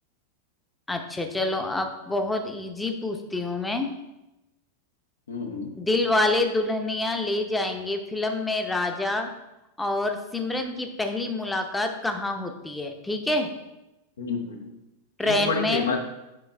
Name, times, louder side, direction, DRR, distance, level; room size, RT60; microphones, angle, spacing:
voice 1, 0.9-3.9 5.8-9.3 9.8-13.5 15.2-15.9, left 2 dB, 5° left, 5 dB, 0.7 m, -27 dB
voice 2, 5.3-5.7 14.2-14.7 15.2-16.0, left 4 dB, 65° left, 3 dB, 0.9 m, -29 dB
6.9 x 4.7 x 3.4 m, 0.96 s
figure-of-eight pair, 90°, 0 cm